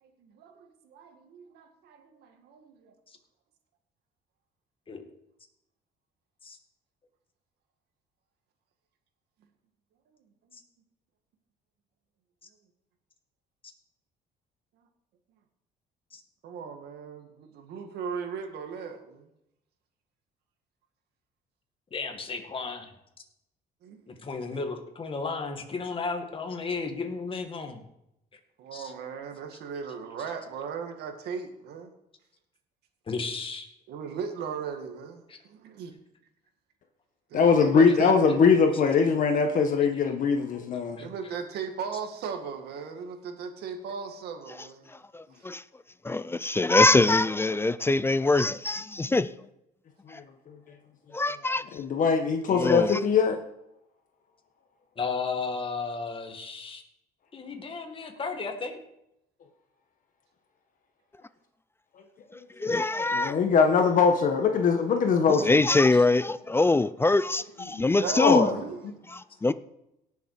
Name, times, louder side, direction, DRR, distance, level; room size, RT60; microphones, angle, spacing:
voice 1, 0.0-2.6 10.5-10.6 16.4-19.3 23.8-24.3 28.6-31.9 33.9-35.9 37.3-38.1 41.0-44.9 45.4-45.5 67.7-68.9, right 6 dB, 75° right, 2.1 m, -37 dB
voice 2, 21.9-22.9 24.1-27.8 28.7-28.9 33.1-33.7 35.3-35.4 39.8-39.9 41.0-41.1 55.0-56.8 57.3-58.8, left 4 dB, 30° left, 2.0 m, -34 dB
voice 3, 37.3-41.0 50.1-50.2 51.7-53.4 63.1-65.6 67.7-67.8 68.1-68.6, left 5 dB, 50° left, 1.4 m, -22 dB
voice 4, 45.1-45.6 46.0-49.3 50.1-50.2 51.1-51.6 52.5-53.0 62.6-63.4 65.4-68.5 69.1-69.5, left 2 dB, 15° left, 0.4 m, -23 dB
17.5 x 7.1 x 4.9 m
cardioid pair, 110°, 17 cm